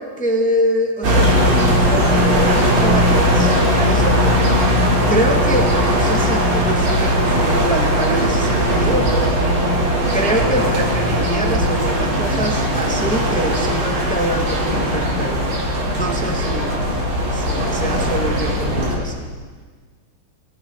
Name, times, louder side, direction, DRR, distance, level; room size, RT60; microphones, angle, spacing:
voice 1, 0.0-4.2 5.1-9.4 10.0-15.4 15.9-16.8 17.3-19.3, right 1 dB, 5° left, 1 dB, 0.9 m, -24 dB
sound 1, 1.0-18.9, equal, 65° right, 7.5 m, -18 dB
29.5 x 19.0 x 5.1 m, 1.5 s
omnidirectional pair, 5.0 m